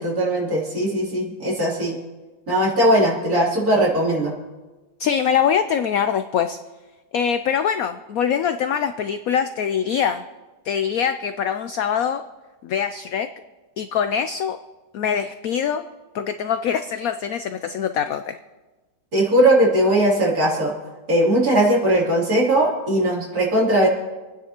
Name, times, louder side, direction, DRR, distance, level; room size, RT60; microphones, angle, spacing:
voice 1, 0.0-2.0 2.5-4.3 19.1-20.7 21.1-23.9, right 1 dB, 50° right, -5 dB, 3.6 m, -19 dB
voice 2, 5.0-6.6 7.1-10.2 10.6-12.2 12.6-13.3 13.8-14.6 14.9-15.8 16.1-18.4, left 8 dB, 75° left, 9 dB, 0.8 m, -23 dB
27.5 x 9.7 x 2.9 m, 1.2 s
omnidirectional pair, 2.0 m